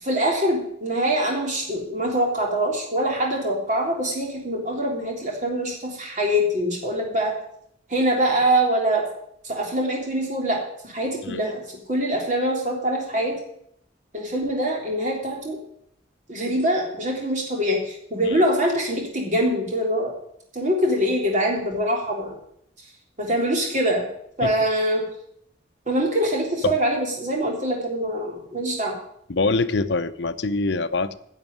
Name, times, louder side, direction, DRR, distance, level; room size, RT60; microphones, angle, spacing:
voice 1, 0.0-7.3 7.9-9.0 9.4-11.6 11.9-13.3 14.1-15.6 16.3-20.1 20.5-22.4 23.2-24.0 24.4-25.0 25.9-29.0, right 1 dB, 40° right, 0 dB, 3.4 m, -24 dB
voice 2, 29.3-31.1, left 3 dB, 65° left, 10 dB, 0.7 m, -24 dB
11.0 x 7.1 x 9.3 m, 0.71 s
head